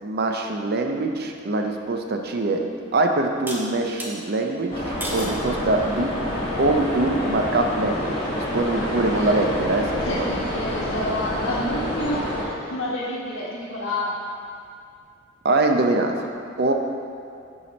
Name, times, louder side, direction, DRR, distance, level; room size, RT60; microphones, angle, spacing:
voice 1, 0.0-2.6 2.9-6.1 6.6-10.3 15.4-16.2 16.6-16.7, right 2 dB, 50° right, 3 dB, 0.6 m, -23 dB
sound 1, 2.1-2.2 3.5-4.1 5.0-5.4 6.0-6.5, right 1 dB, 10° right, 0.9 m, -33 dB
sound 2, 4.7-12.4, left 1 dB, 25° left, 1.7 m, -28 dB
voice 2, 8.7-9.4 10.0-14.1, left 1 dB, 75° left, -7 dB, 1.5 m, -29 dB
7.0 x 4.8 x 5.3 m, 2.3 s
head